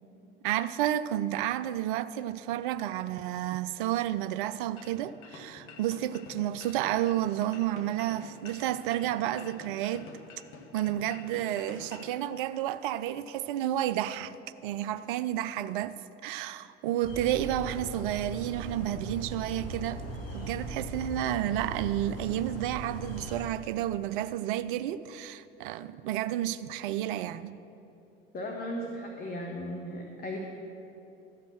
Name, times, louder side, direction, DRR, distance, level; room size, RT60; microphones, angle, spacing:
voice 1, 0.4-10.1 10.7-14.3 14.6-15.9 16.2-20.0 20.3-27.6, right 12 dB, 60° right, 0.5 m, -31 dB
sound 1, 4.8-12.1, left 4 dB, 45° left, 1.4 m, -48 dB
sound 2, 17.0-23.4, right 2 dB, 75° left, 1.8 m, -39 dB
voice 2, 28.3-30.4, left 1 dB, 30° left, 1.2 m, -36 dB
13.0 x 5.3 x 7.4 m
figure-of-eight pair, 70°, 30 cm